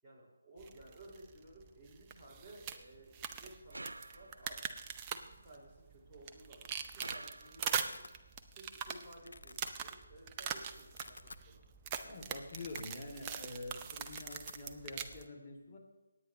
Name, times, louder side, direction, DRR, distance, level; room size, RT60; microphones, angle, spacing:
voice 1, 0.0-8.0 8.5-11.6, right 1 dB, 5° right, -12 dB, 5.2 m, -56 dB
sound 1, 0.6-15.2, right 7 dB, 20° right, 0.6 m, -43 dB
sound 2, 3.7-4.6 7.0-7.9, right 2 dB, 80° right, 0.4 m, -49 dB
Domestic sounds home sounds, 6.7-7.0 7.3-8.1 8.6-8.9 9.2-9.7 10.3-10.4 10.8-11.5 11.9-12.0 12.3-13.3 13.5-13.7 13.9-14.6, left 3 dB, 70° left, 0.6 m, -53 dB
voice 2, 12.0-15.8, left 2 dB, 30° left, -1 dB, 2.8 m, -47 dB
25.5 x 9.4 x 3.1 m, 1.1 s
figure-of-eight pair, 155°, 0 cm